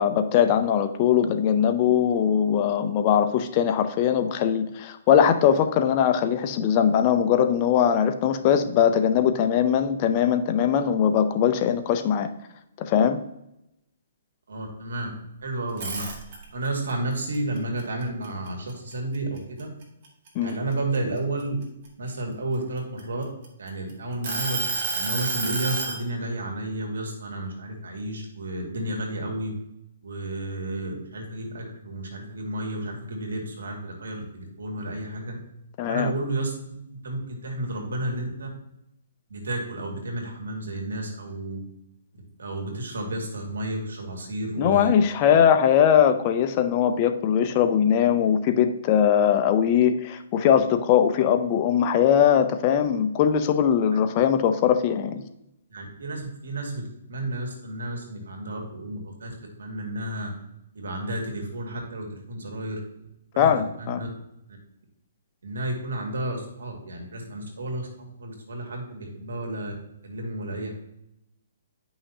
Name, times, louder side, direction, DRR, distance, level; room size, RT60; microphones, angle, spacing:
voice 1, 0.0-12.3 12.8-13.2 20.4-20.6 35.8-36.1 44.6-55.2 63.4-64.0, left 8 dB, 30° left, 8 dB, 0.6 m, -21 dB
voice 2, 14.5-15.1 15.4-16.0 16.5-19.7 20.4-21.6 22.0-23.2 23.6-24.6 24.9-29.5 30.0-35.4 35.9-36.5 36.9-38.5 39.3-41.6 42.4-44.9 45.3-45.4 55.7-60.3 60.7-62.8 63.3-64.1 65.4-69.7 70.0-70.7, right 1 dB, 90° right, 2 dB, 2.2 m, -32 dB
sound 1, 15.7-16.7 17.1-18.9 19.4-19.6 20.0-21.9 22.6-23.7 24.2-26.0, right 3 dB, 45° right, 1.9 m, -29 dB
9.7 x 5.7 x 2.8 m, 0.85 s
hypercardioid pair, 160°, 0 cm